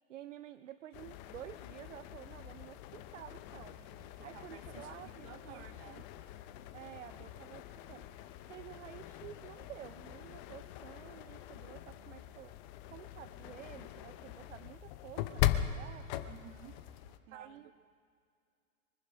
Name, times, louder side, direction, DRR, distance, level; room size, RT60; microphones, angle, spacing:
voice 1, 0.1-3.8 4.2-6.0 6.7-8.1 8.5-12.5 12.9-16.1 17.3-17.7, right 12 dB, 65° right, 14 dB, 0.6 m, -51 dB
sound 1, 0.9-17.2, left 12 dB, 35° left, 0.8 m, -41 dB
voice 2, 3.8-6.1 16.3-16.8 17.3-17.7, right 9 dB, 40° right, 8 dB, 1.4 m, -54 dB
24.0 x 11.0 x 5.0 m, 2.3 s
figure-of-eight pair, 105°, 41 cm